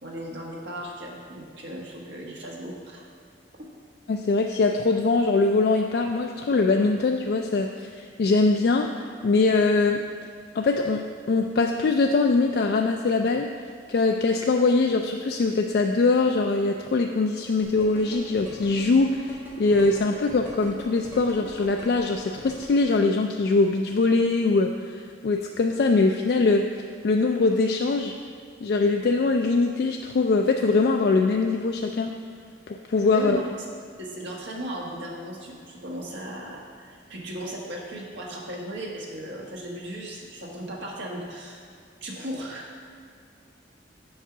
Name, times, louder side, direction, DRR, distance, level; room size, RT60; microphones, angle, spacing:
voice 1, 0.0-3.1 3.6-3.7 33.1-33.6 34.0-41.6 42.0-42.9, right 1 dB, 70° right, -2 dB, 1.4 m, -36 dB
voice 2, 4.1-10.0 10.5-13.5 13.9-26.7 27.0-28.1 28.6-32.1 32.7-33.4, left 3 dB, 55° left, 3 dB, 0.3 m, -22 dB
sound 1, 17.6-22.8, equal, 10° right, 1.8 m, -42 dB
7.2 x 4.5 x 6.0 m, 2.3 s
head